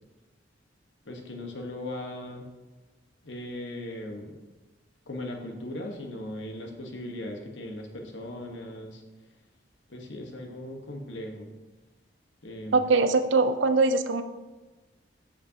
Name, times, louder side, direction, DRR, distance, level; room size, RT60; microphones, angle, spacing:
voice 1, 1.0-2.5 3.2-4.4 5.1-9.0 9.9-11.5 12.4-12.9, left 1 dB, 75° left, 2 dB, 1.2 m, -38 dB
voice 2, 12.7-14.2, right 3 dB, 80° right, 9 dB, 0.6 m, -22 dB
13.5 x 5.1 x 2.8 m, 1.2 s
head